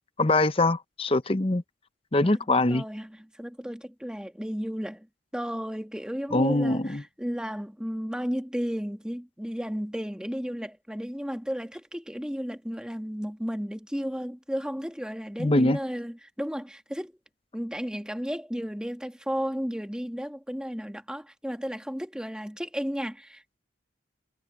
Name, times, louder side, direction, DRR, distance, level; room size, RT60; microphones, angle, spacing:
voice 1, 0.2-1.6 2.1-2.8 6.3-7.0 15.4-15.8, left 2 dB, 30° left, 0.7 m, -23 dB
voice 2, 2.2-5.1 5.3-17.1 17.5-23.6, equal, 5° right, 1.6 m, -33 dB
head